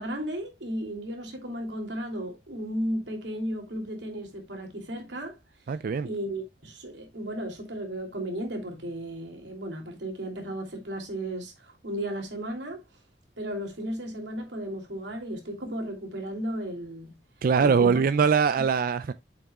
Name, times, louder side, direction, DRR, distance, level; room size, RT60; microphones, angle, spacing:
voice 1, 0.0-5.4 6.0-12.8 13.4-17.1 17.6-17.9, right 1 dB, 90° right, 2.9 m, -34 dB
voice 2, 5.7-6.1 17.4-19.1, right 5 dB, 55° right, 0.4 m, -22 dB
8.5 x 7.3 x 2.3 m
head